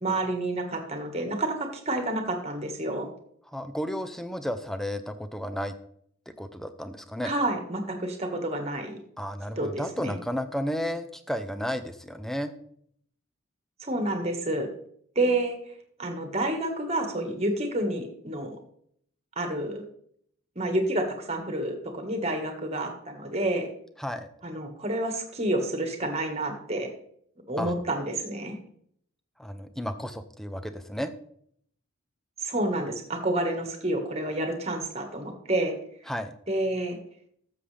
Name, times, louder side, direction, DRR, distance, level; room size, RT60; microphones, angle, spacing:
voice 1, 0.0-3.1 7.2-9.0 9.6-10.1 13.8-14.7 15.1-15.6 16.0-18.6 19.4-19.8 20.5-23.7 24.4-26.9 27.5-28.6 32.4-35.7 36.5-37.0, right 1 dB, 30° right, 5 dB, 1.5 m, -29 dB
voice 2, 3.5-5.7 6.3-7.3 9.2-12.5 24.0-24.3 27.6-27.7 29.4-31.1 36.1-36.3, equal, ahead, 9 dB, 0.5 m, -33 dB
13.0 x 7.0 x 3.3 m, 0.66 s
head